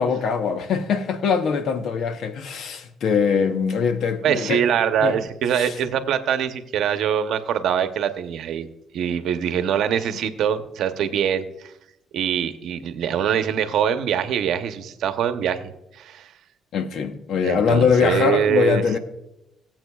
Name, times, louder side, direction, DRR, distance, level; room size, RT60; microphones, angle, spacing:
voice 1, 0.0-4.6 5.0-5.2 5.6-5.7 16.7-19.0, left 6 dB, 70° left, 0.9 m, -22 dB
voice 2, 4.2-8.7 8.9-11.7 12.1-15.7 16.0-16.3 17.4-18.8, right 9 dB, 80° right, 0.8 m, -23 dB
21.5 x 7.6 x 2.3 m
cardioid pair, 90°, 0 cm